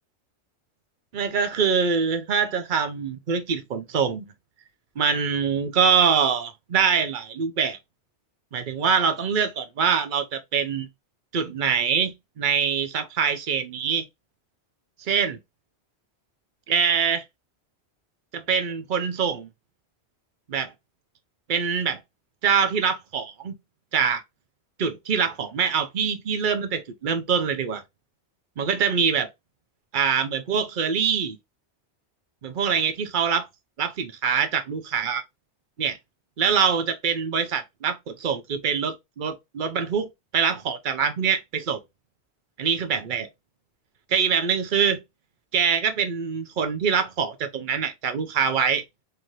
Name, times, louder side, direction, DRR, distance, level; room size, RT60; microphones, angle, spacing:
voice 1, 1.1-4.2 5.0-7.8 8.5-10.9 11.3-14.0 15.0-15.4 16.7-17.2 18.3-19.5 20.5-20.7 21.5-22.0 22.4-23.5 23.9-24.2 24.8-27.8 28.6-29.3 29.9-31.4 32.4-33.5 33.8-35.2 35.8-36.0 36.4-41.8 42.6-43.3 44.1-45.0 45.5-48.8, right 6 dB, 50° right, 0.9 m, -24 dB
4.0 x 2.9 x 3.1 m
omnidirectional pair, 1.1 m